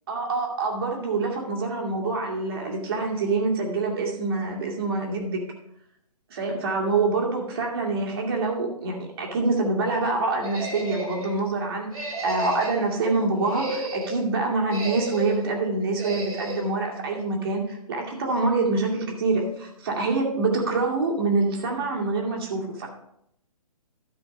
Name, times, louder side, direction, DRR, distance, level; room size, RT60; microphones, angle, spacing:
voice 1, 0.1-5.4 6.3-11.9 12.2-22.9, right 3 dB, 40° right, 0 dB, 2.5 m, -26 dB
sound 1, 10.4-11.3 11.9-12.9 13.3-14.2 14.7-15.4 16.0-16.7, right 2 dB, 65° right, 3.0 m, -32 dB
12.5 x 5.0 x 5.4 m, 0.75 s
figure-of-eight pair, 135°, 19 cm